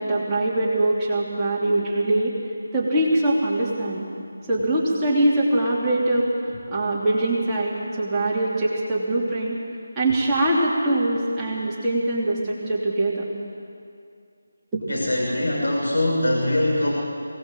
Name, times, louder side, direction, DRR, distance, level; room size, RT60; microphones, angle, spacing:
voice 1, 0.0-2.3 2.7-4.0 4.5-6.3 6.7-9.6 9.9-13.3 14.7-14.8, right 1 dB, 10° right, -8 dB, 3.1 m, -22 dB
voice 2, 14.9-16.9, left 1 dB, 75° left, -2 dB, 5.9 m, -22 dB
22.5 x 19.0 x 7.5 m, 2.4 s
figure-of-eight pair, 160°, 0 cm